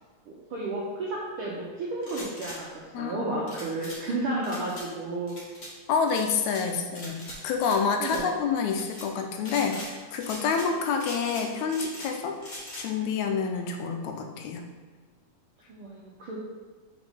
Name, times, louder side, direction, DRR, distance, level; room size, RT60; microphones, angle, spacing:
voice 1, 0.3-5.4 8.0-8.3 15.7-16.4, right 2 dB, 75° right, -5 dB, 1.2 m, -32 dB
sound 1, 2.0-2.6 3.5-4.0 4.4-4.8 5.3-5.7 6.1-6.6 6.9-7.8 8.0-8.2 8.7-9.0 9.4-9.9 10.2-10.7 11.0-12.1 12.4-12.8, left 1 dB, 45° left, 1.2 m, -41 dB
voice 2, 2.9-3.4 5.9-12.4 12.8-14.6, left 5 dB, 80° left, 4 dB, 1.9 m, -28 dB
5.2 x 4.1 x 4.9 m, 1.4 s
omnidirectional pair, 3.4 m